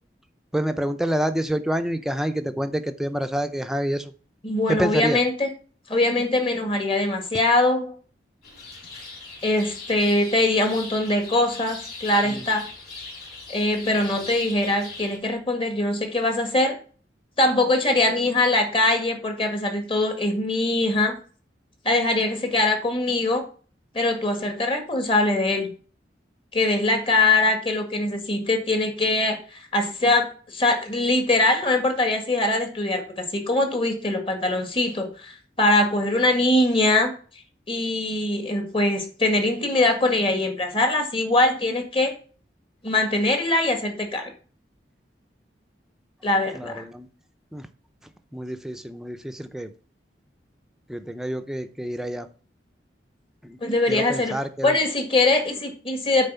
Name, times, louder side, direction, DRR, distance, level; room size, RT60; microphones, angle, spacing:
voice 1, 0.5-4.1 4.7-5.2 12.2-12.5 46.5-47.1 47.5-47.7 48.3-49.7 50.9-52.3 53.4-53.6 53.9-54.8, equal, 5° right, 7 dB, 0.6 m, -27 dB
voice 2, 4.4-5.5 5.9-8.0 9.4-12.6 13.5-16.8 17.4-21.1 21.8-23.4 23.9-25.7 26.5-37.1 37.7-42.1 42.8-44.3 46.2-46.8 53.6-54.3 54.6-56.3, left 2 dB, 30° left, 4 dB, 1.8 m, -22 dB
sound 1, 8.4-15.2, left 3 dB, 60° left, 4.0 m, -40 dB
9.3 x 4.1 x 6.8 m, 0.40 s
head